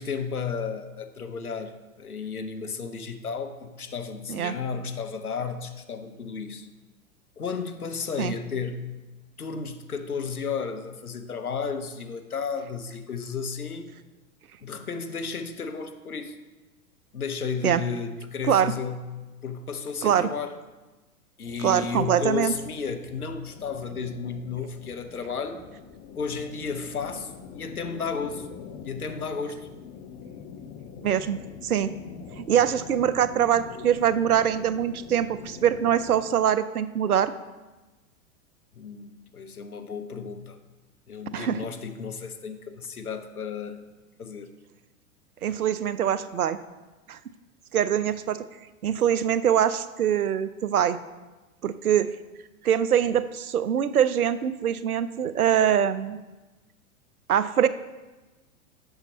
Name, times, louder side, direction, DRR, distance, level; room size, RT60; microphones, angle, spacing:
voice 1, 0.0-6.7 7.4-8.9 9.4-13.9 14.6-16.4 17.1-19.2 19.4-20.6 21.4-25.6 26.1-28.5 28.8-29.7 38.7-40.6 41.1-43.8 44.2-44.5, left 5 dB, 85° left, 8 dB, 0.8 m, -33 dB
sound 1, 21.4-36.3, left 6 dB, 30° left, 0.7 m, -44 dB
voice 2, 21.6-22.5 31.0-31.4 31.6-31.9 32.4-37.3 41.3-41.6 45.4-46.6 47.1-47.2 47.7-48.4 48.8-51.0 51.6-52.1 52.6-56.2 57.3-57.7, right 9 dB, 80° right, 14 dB, 0.6 m, -23 dB
8.1 x 6.5 x 4.0 m, 1.2 s
figure-of-eight pair, 100°, 44 cm